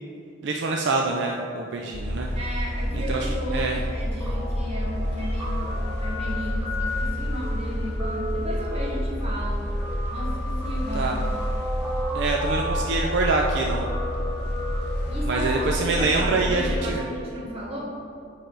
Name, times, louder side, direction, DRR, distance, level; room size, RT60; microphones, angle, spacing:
voice 1, 0.4-2.3 2.9-3.8 10.9-11.2 12.1-13.9 15.3-17.0, right 3 dB, 65° right, 1 dB, 0.4 m, -25 dB
sound 1, 1.9-16.9, equal, 60° left, 0.7 m, -29 dB
voice 2, 2.3-9.6 10.1-11.4 15.1-17.8, equal, 30° right, -4 dB, 1.4 m, -34 dB
Guitar, 4.2-16.9, equal, 10° right, 0.9 m, -35 dB
8.6 x 3.4 x 3.9 m, 2.6 s
head